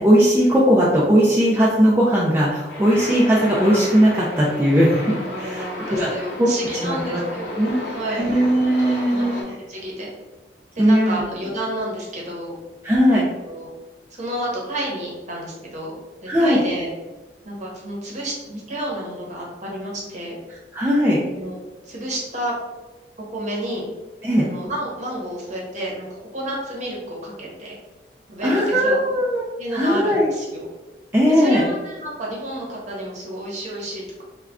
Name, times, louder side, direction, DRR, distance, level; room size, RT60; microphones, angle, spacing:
voice 1, 0.0-5.0 5.4-6.1 6.4-6.5 6.8-7.2 7.6-7.8 8.1-9.3 10.8-11.2 12.8-13.3 16.3-16.6 20.7-21.2 24.2-24.5 28.4-29.4 29.7-30.3 31.1-31.6, equal, 15° right, -5 dB, 0.3 m, -18 dB
sound 1, 2.7-9.4, left 1 dB, 65° left, 0.8 m, -33 dB
voice 2, 5.3-8.3 9.1-10.1 10.7-12.5 13.1-13.7 14.1-15.9 16.2-16.9 17.4-20.4 21.3-21.6 21.9-22.5 23.3-23.9 24.4-27.7 28.3-28.9 29.6-30.7 31.3-34.2, right 1 dB, 45° right, -3 dB, 0.8 m, -30 dB
2.2 x 2.2 x 3.5 m, 1.2 s
head